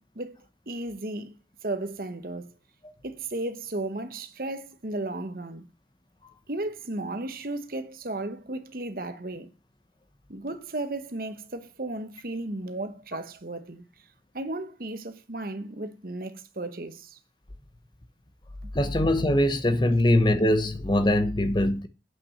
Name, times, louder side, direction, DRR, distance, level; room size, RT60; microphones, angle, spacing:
voice 1, 0.0-1.3 1.6-2.5 3.0-5.7 6.5-9.5 10.3-13.8 14.3-17.2 18.6-18.7, right 2 dB, 55° right, 1.1 m, -34 dB
voice 2, 18.7-21.9, left 1 dB, 25° left, 0.9 m, -22 dB
8.7 x 6.0 x 6.5 m
head